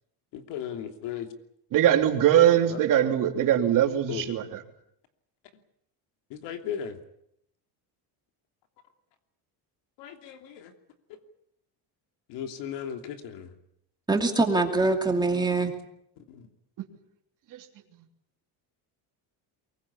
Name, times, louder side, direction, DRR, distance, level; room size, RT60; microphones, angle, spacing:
voice 1, 0.3-1.3 2.7-2.8 4.1-4.2 6.3-7.0 10.0-10.7 12.3-13.5 15.3-15.5 16.3-16.5, left 9 dB, 85° left, 6 dB, 3.0 m, -36 dB
voice 2, 1.7-4.6 17.5-17.6, right 10 dB, 50° right, 4 dB, 3.1 m, -22 dB
voice 3, 14.1-15.7, right 3 dB, 10° right, 3 dB, 2.6 m, -23 dB
23.5 x 21.0 x 8.6 m, 0.75 s
cardioid pair, 160°, 41 cm